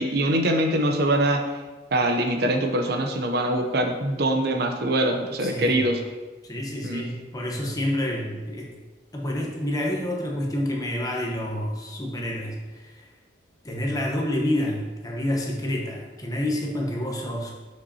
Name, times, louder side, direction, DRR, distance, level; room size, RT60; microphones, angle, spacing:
voice 1, 0.0-1.4 1.9-6.0 6.8-7.1, right 1 dB, 55° right, 4 dB, 0.6 m, -23 dB
voice 2, 5.4-5.8 6.4-8.7 9.1-13.1 13.6-17.5, left 1 dB, 20° left, -1 dB, 0.9 m, -28 dB
7.5 x 5.6 x 2.8 m, 1.3 s
head